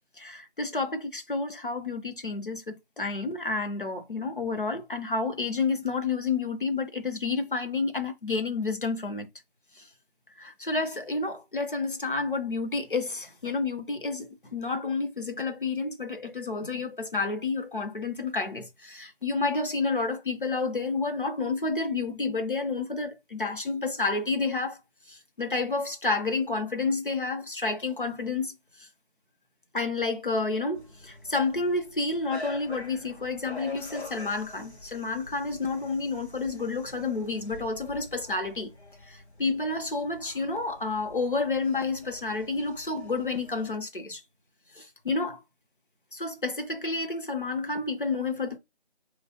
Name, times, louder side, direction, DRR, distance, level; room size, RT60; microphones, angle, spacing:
voice 1, 0.2-9.3 9.8-9.9 10.4-24.8 25.1-28.5 28.8-28.9 29.7-38.7 39.1-44.2 44.8-45.4 46.1-48.6, left 3 dB, 50° left, 0.8 m, -30 dB
sound 1, 30.7-43.8, left 3 dB, 80° left, 1.4 m, -46 dB
3.0 x 2.8 x 2.9 m
figure-of-eight pair, 170°, 33 cm